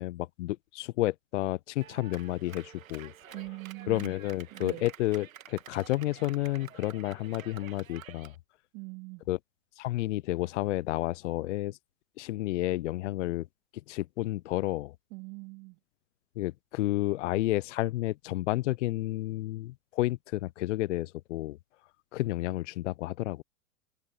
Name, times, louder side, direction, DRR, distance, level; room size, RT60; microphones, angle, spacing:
voice 1, 0.0-3.1 3.9-8.3 9.3-9.4 9.8-11.8 12.2-13.5 13.9-14.9 16.4-21.6 22.1-23.4, left 16 dB, 60° left, 0.6 m, -31 dB
Clapping, 1.8-8.4, right 11 dB, 75° right, 1.5 m, -50 dB
voice 2, 3.3-4.1 4.5-4.9 8.7-9.2 15.1-15.8, right 30 dB, 45° right, 2.4 m, -42 dB
hypercardioid pair, 105°, 41 cm